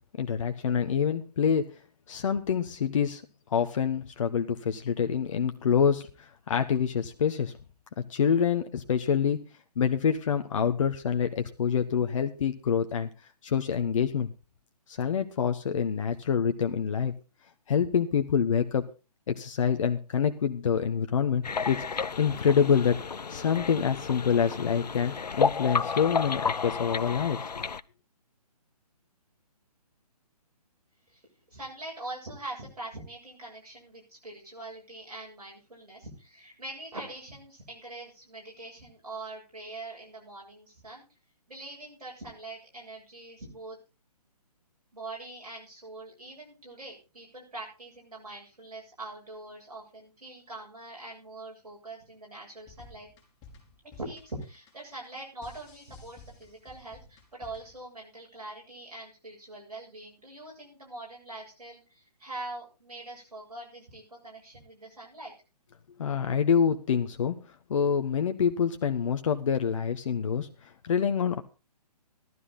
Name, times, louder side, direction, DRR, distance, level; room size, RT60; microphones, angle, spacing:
voice 1, 0.2-1.7 2.1-3.2 3.5-7.5 8.1-9.4 9.8-13.1 13.4-14.3 14.9-17.1 17.7-18.8 19.3-23.0 23.3-27.6 66.0-67.4 67.7-71.4, left 7 dB, 50° left, 7 dB, 1.1 m, -26 dB
sound 1, 21.4-27.8, left 5 dB, 85° left, 0.6 m, -31 dB
voice 2, 31.5-41.0 41.5-43.8 44.9-53.1 54.0-65.3, right 2 dB, 70° right, -3 dB, 7.6 m, -43 dB
sound 2, 52.6-57.8, left 3 dB, 20° left, 4.0 m, -53 dB
15.0 x 12.5 x 4.1 m, 0.31 s
figure-of-eight pair, 140°, 20 cm